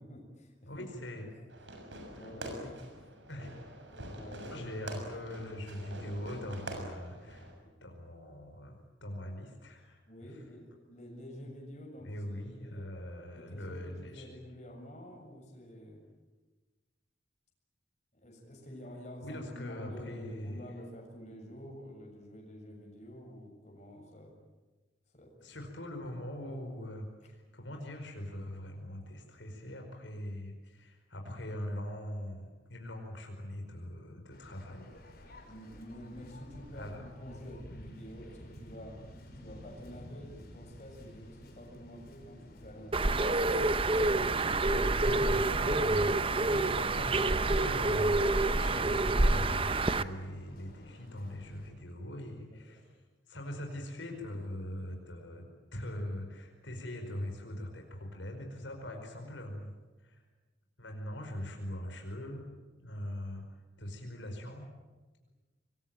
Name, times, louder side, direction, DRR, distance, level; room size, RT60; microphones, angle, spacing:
voice 1, 0.0-0.9 1.3-1.4 2.1-2.8 3.3-3.5 3.9-4.7 5.2-6.0 7.6-7.7 10.1-12.9 13.3-16.0 18.1-24.4 25.1-25.7 35.5-39.0 39.4-43.2 52.5-52.8, equal, 40° left, 0 dB, 7.1 m, -49 dB
voice 2, 0.7-1.3 3.3-3.5 4.5-7.5 7.8-10.3 12.0-14.3 19.2-20.6 25.4-34.9 36.7-37.0 44.8-52.9 53.3-59.7 60.0-60.2 60.8-64.7, left 1 dB, 85° left, 3 dB, 5.0 m, -42 dB
Fireworks, 1.5-7.5, right 1 dB, 75° right, 6.7 m, -45 dB
Waves surf, 34.3-51.7, left 1 dB, 55° left, 5.7 m, -52 dB
Bird, 42.9-50.0, right 2 dB, 30° right, 0.8 m, -27 dB
26.0 x 22.0 x 9.1 m, 1.2 s
head